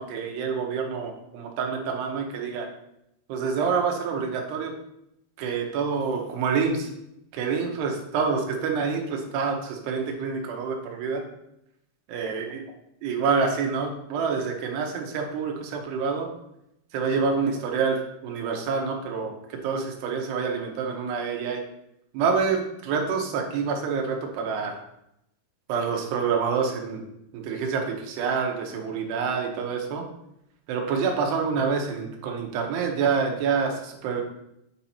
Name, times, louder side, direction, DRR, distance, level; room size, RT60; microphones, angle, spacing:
voice 1, 0.0-2.7 3.3-4.7 5.4-6.9 7.3-11.2 12.1-12.6 13.0-16.3 16.9-21.6 22.1-24.8 25.7-27.0 27.3-30.0 30.7-34.2, right 5 dB, 85° right, 2 dB, 3.1 m, -27 dB
8.7 x 4.2 x 4.3 m, 0.80 s
omnidirectional pair, 4.7 m